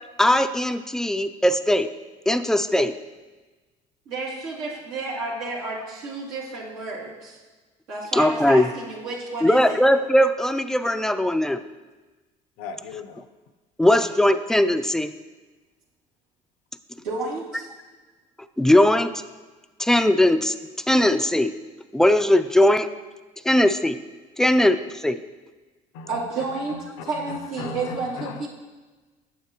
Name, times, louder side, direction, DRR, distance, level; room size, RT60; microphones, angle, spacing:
voice 1, 0.2-1.9 2.3-2.9 8.1-8.7 9.4-11.6 13.8-15.1 18.6-19.1 19.8-20.5 20.9-21.5 21.9-22.9 23.5-24.0 24.4-25.2, left 1 dB, 5° left, 10 dB, 0.3 m, -19 dB
voice 2, 4.1-7.4 7.9-9.8 17.0-17.9 26.1-26.8 27.1-28.5, right 3 dB, 85° right, -9 dB, 2.3 m, -31 dB
voice 3, 12.6-13.2 25.9-26.2 26.5-28.5, left 4 dB, 85° left, 9 dB, 0.6 m, -37 dB
9.3 x 6.8 x 2.9 m, 1.3 s
supercardioid pair, 90°, 15 cm